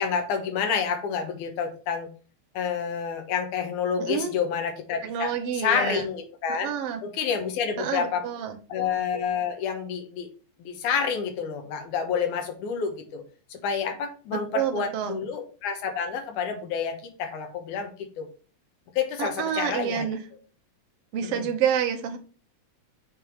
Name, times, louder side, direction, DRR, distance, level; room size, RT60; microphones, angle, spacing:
voice 1, 0.0-2.1 2.5-6.7 7.0-8.2 8.7-10.3 10.6-13.2 13.5-18.3 19.0-20.2 21.2-21.5, left 6 dB, 80° left, 6 dB, 2.5 m, -29 dB
voice 2, 4.0-4.3 5.0-6.1 6.6-7.0 7.8-8.6 14.5-15.2 19.2-20.2 21.1-22.2, right 8 dB, 65° right, 4 dB, 1.7 m, -28 dB
6.5 x 3.5 x 4.5 m, 0.38 s
omnidirectional pair, 3.5 m